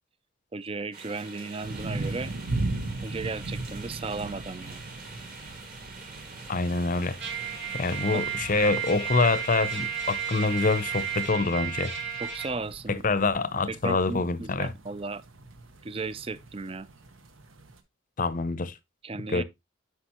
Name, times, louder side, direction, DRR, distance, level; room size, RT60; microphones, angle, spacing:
voice 1, 0.5-2.3 3.0-4.8 8.1-8.3 12.2-13.0 13.7-15.2 15.8-16.9 19.0-19.4, right 3 dB, 25° right, 0.4 m, -35 dB
sound 1, 0.9-11.2, right 3 dB, 45° right, 2.6 m, -46 dB
sound 2, 1.6-17.8, right 2 dB, 75° right, 1.1 m, -39 dB
voice 2, 6.5-7.2 7.7-11.9 12.9-14.7 18.2-18.7 19.3-19.4, left 3 dB, 40° left, 0.6 m, -26 dB
Trumpet, 7.2-12.5, right 8 dB, 60° right, 3.9 m, -33 dB
10.0 x 6.0 x 2.9 m
head